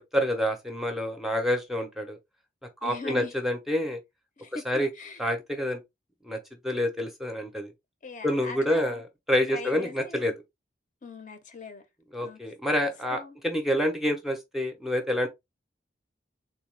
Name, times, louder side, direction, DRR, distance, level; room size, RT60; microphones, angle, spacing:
voice 1, 0.1-2.2 2.8-4.0 4.7-4.9 5.2-5.8 6.2-7.7 8.2-9.0 9.3-10.3 12.1-15.3, equal, ahead, 0.6 m, -27 dB
voice 2, 2.8-3.3 4.4-5.2 8.0-9.0 9.5-10.3 11.0-11.8 12.2-12.4 13.1-13.4, left 3 dB, 45° left, 0.6 m, -40 dB
3.7 x 2.3 x 3.1 m
head